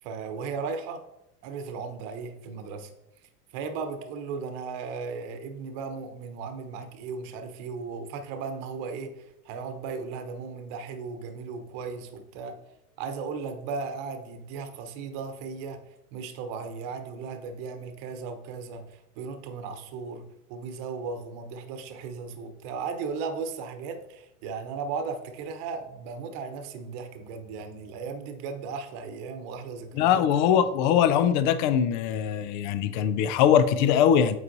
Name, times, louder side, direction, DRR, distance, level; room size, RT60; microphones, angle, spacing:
voice 1, 0.0-1.0 1.4-2.9 3.5-12.6 13.0-15.8 16.1-30.3, right 5 dB, 45° right, 7 dB, 1.0 m, -36 dB
voice 2, 29.9-34.4, left 9 dB, 35° left, 12 dB, 0.4 m, -22 dB
8.3 x 4.7 x 2.7 m, 0.88 s
hypercardioid pair, 105°, 48 cm